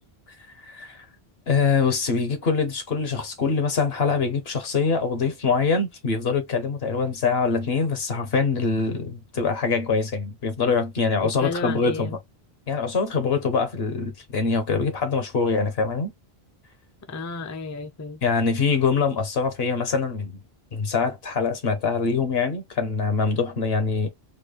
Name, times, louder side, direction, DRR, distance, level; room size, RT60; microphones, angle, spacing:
voice 1, 0.6-1.0 1.5-12.1 12.7-16.1 18.2-20.4 20.7-24.1, left 4 dB, 70° left, 1.2 m, -24 dB
voice 2, 11.2-12.2 17.1-18.2, left 4 dB, 25° left, 0.4 m, -32 dB
4.2 x 2.3 x 3.2 m
omnidirectional pair, 1.1 m